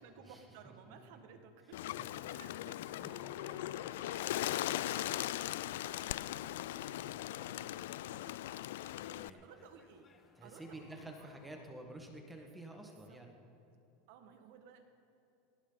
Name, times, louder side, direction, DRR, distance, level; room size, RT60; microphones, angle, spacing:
voice 1, 0.0-8.4 9.3-10.1 10.4-11.3 12.8-13.2 14.1-14.8, right 6 dB, 70° right, 6 dB, 1.8 m, -58 dB
voice 2, 0.7-1.0 9.0-9.4 10.4-13.3, right 1 dB, 10° right, 2 dB, 1.7 m, -50 dB
Bird, 1.7-9.3, left 14 dB, 80° left, 0.3 m, -39 dB
sound 1, 2.8-11.7, left 5 dB, 25° left, 1.1 m, -61 dB
18.5 x 18.0 x 4.0 m, 2.7 s
supercardioid pair, 135°, 0 cm